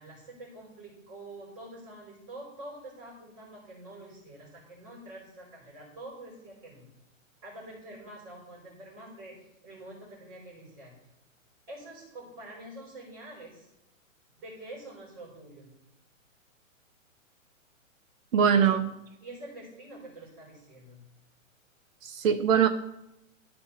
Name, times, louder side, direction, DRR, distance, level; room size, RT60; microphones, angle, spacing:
voice 1, 0.0-6.9 7.4-9.4 9.6-10.9 11.7-13.7 14.4-15.7 18.5-18.8 19.2-21.1, right 1 dB, 35° right, -4 dB, 3.7 m, -46 dB
voice 2, 18.3-18.8 22.0-22.7, right 7 dB, 70° right, 7 dB, 0.8 m, -22 dB
13.0 x 4.5 x 4.2 m, 0.88 s
hypercardioid pair, 125°, 41 cm